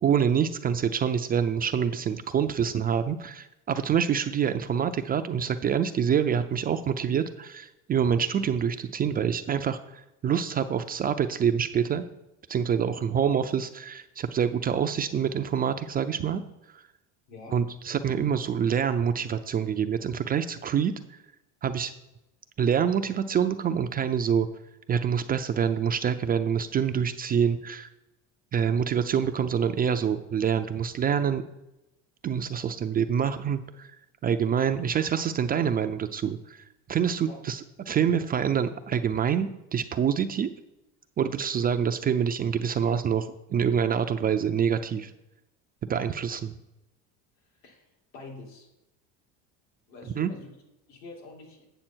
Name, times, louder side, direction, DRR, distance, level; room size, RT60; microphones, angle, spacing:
voice 1, 0.0-12.0 12.5-16.4 16.7-16.8 17.5-21.2 21.6-21.9 22.6-24.5 24.9-27.9 28.5-31.4 32.2-34.0 34.2-40.5 41.2-45.1 45.9-46.5 50.1-50.3, right 8 dB, 25° right, 8 dB, 0.4 m, -26 dB
voice 2, 17.3-17.6 37.3-37.4 47.6-47.9 48.1-48.7 49.9-50.5 50.9-51.6, left 3 dB, 75° left, 0 dB, 2.8 m, -45 dB
8.9 x 6.9 x 4.4 m, 0.94 s
supercardioid pair, 120°, 36 cm